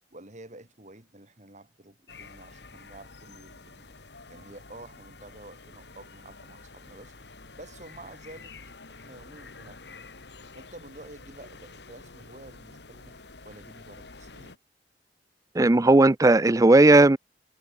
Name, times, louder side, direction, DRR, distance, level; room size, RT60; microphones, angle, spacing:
voice 1, 0.1-3.9 4.3-7.1 7.5-8.5 8.9-10.1 10.5-13.2 13.4-14.6, right 2 dB, 40° right, 4.7 m, -49 dB
sound 1, 2.1-14.6, left 3 dB, 65° left, 2.3 m, -48 dB
voice 2, 15.6-17.2, right 2 dB, 20° right, 0.5 m, -16 dB
head